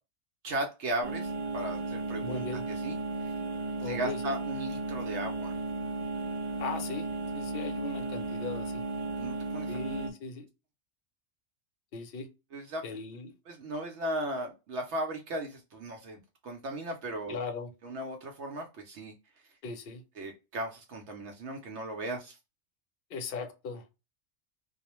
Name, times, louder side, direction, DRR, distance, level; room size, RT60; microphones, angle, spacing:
voice 1, 0.4-2.5 2.8-3.4 3.8-5.6 9.2-9.7 12.5-12.8 13.5-17.4 17.8-19.1 20.2-22.4, right 1 dB, 70° right, 0.9 m, -36 dB
sound 1, 1.0-10.1, right 3 dB, 50° right, 0.5 m, -35 dB
voice 2, 2.2-2.6 3.8-4.3 6.6-7.1 7.3-8.8 9.7-10.5 11.9-12.3 12.8-13.3 17.3-17.7 19.6-20.0 23.1-23.8, left 4 dB, 60° left, 0.7 m, -38 dB
2.3 x 2.1 x 2.9 m
omnidirectional pair, 1.2 m